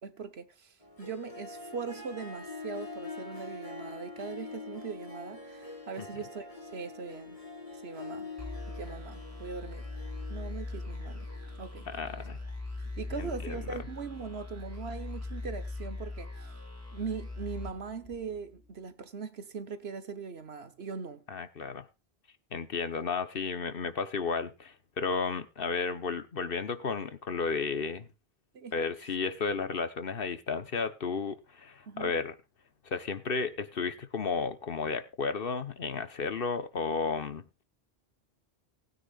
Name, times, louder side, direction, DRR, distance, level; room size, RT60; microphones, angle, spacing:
voice 1, 0.0-7.4 7.7-8.3 8.7-9.9 10.3-11.3 11.6-12.3 13.0-16.5 16.9-21.2 28.5-28.8 31.9-32.2, right 5 dB, 75° right, 1.5 m, -40 dB
Harp, 0.8-12.0, left 3 dB, 35° left, 2.9 m, -45 dB
sound 1, 8.4-18.7, left 2 dB, 15° right, 4.8 m, -40 dB
voice 2, 11.9-12.4 13.2-13.8 21.3-21.9 22.5-28.1 28.7-32.3 32.9-37.6, left 5 dB, 60° left, 1.3 m, -33 dB
19.5 x 9.3 x 2.5 m
omnidirectional pair, 1.1 m